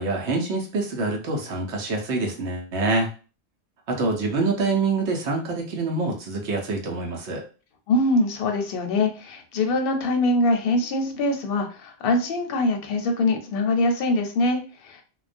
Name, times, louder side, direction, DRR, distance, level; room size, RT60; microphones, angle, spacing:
voice 1, 0.0-3.1 3.9-7.4, right 3 dB, 75° right, 1 dB, 1.0 m, -26 dB
voice 2, 7.9-15.0, left 2 dB, 60° left, 4 dB, 0.7 m, -23 dB
2.3 x 2.1 x 2.5 m, 0.35 s
omnidirectional pair, 1.2 m